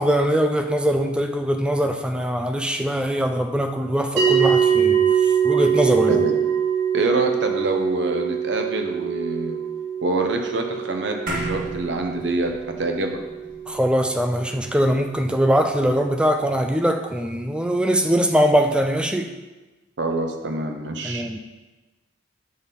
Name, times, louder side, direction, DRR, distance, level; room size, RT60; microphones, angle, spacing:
voice 1, 0.0-5.1 5.4-6.2 13.7-19.3 21.0-21.4, equal, 5° right, 5 dB, 0.4 m, -22 dB
sound 1, 4.2-14.7, right 8 dB, 85° right, 2.3 m, -23 dB
voice 2, 6.9-9.6 10.0-13.2 20.0-21.2, right 2 dB, 65° right, 3 dB, 0.8 m, -25 dB
sound 2, 11.3-15.9, right 1 dB, 45° right, 1.5 m, -35 dB
7.8 x 4.1 x 5.3 m, 1.2 s
head